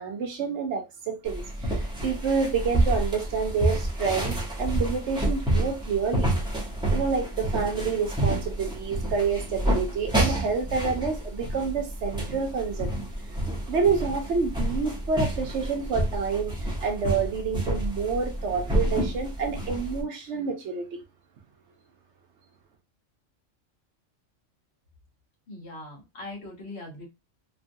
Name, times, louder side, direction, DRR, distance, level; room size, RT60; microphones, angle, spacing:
voice 1, 0.0-6.3 6.9-12.9 13.7-21.0, right 5 dB, 65° right, 0.9 m, -28 dB
sound 1, 1.3-20.0, right 1 dB, 5° right, 0.8 m, -29 dB
voice 2, 25.5-27.1, left 2 dB, 60° left, 1.3 m, -40 dB
3.1 x 2.5 x 2.6 m
omnidirectional pair, 1.3 m